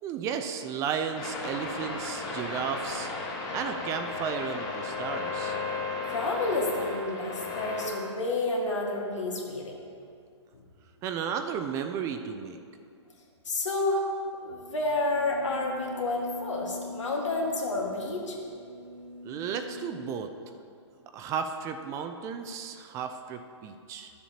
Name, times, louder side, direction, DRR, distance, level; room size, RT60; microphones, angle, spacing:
voice 1, 0.0-3.1 3.5-5.6 11.0-12.6 19.2-20.3 21.1-24.1, right 7 dB, 20° right, 7 dB, 0.4 m, -34 dB
sound 1, 1.2-7.9, left 4 dB, 25° left, 1.5 m, -34 dB
voice 2, 6.0-9.8 13.4-14.1 14.4-18.4, left 2 dB, 85° left, -1 dB, 1.8 m, -30 dB
sound 2, 14.7-20.2, left 2 dB, 90° right, 2.0 m, -43 dB
12.0 x 7.2 x 2.9 m, 2.4 s
hypercardioid pair, 140°, 15 cm